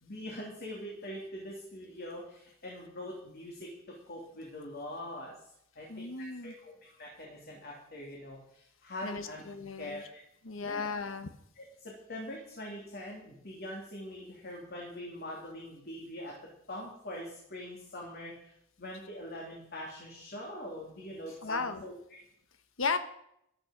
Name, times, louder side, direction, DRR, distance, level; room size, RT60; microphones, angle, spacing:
voice 1, 0.0-3.7 4.1-5.3 5.8-8.4 8.8-9.4 9.8-10.2 10.6-10.9 11.6-16.3 16.7-18.3 18.8-21.9, left 1 dB, 50° left, -2 dB, 3.0 m, -43 dB
voice 2, 5.9-6.5 9.0-10.0 10.4-11.3 21.4-21.8 22.8-23.0, left 4 dB, 70° left, 10 dB, 1.3 m, -35 dB
14.0 x 11.5 x 5.2 m, 0.75 s
head